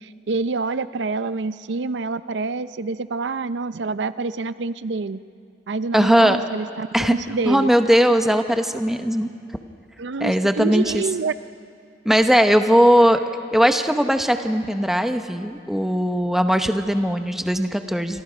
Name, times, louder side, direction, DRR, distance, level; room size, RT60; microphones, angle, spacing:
voice 1, 0.0-5.2 5.7-7.7 10.0-11.3, right 3 dB, 90° right, 14 dB, 0.6 m, -27 dB
voice 2, 5.9-6.4 6.9-7.1 7.5-9.3 10.2-11.0 12.0-13.2 13.5-18.2, equal, ahead, 7 dB, 0.9 m, -19 dB
27.5 x 25.5 x 5.2 m, 2.4 s
head